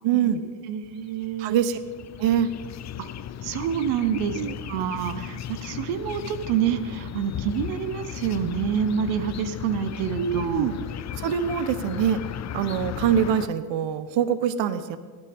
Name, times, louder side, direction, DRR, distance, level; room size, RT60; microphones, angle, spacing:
voice 1, 0.0-0.4 1.4-1.8 2.2-2.5 4.3-4.5 10.2-10.8 11.1-12.2 12.5-15.0, right 9 dB, 65° right, 12 dB, 0.9 m, -24 dB
voice 2, 0.7-1.6 3.0-3.1 3.4-4.4 4.7-10.7, right 8 dB, 90° right, 10 dB, 0.9 m, -27 dB
sound 1, 0.9-13.5, left 10 dB, 35° left, 0.5 m, -36 dB
17.5 x 12.0 x 3.5 m, 1.5 s
supercardioid pair, 90°, 47 cm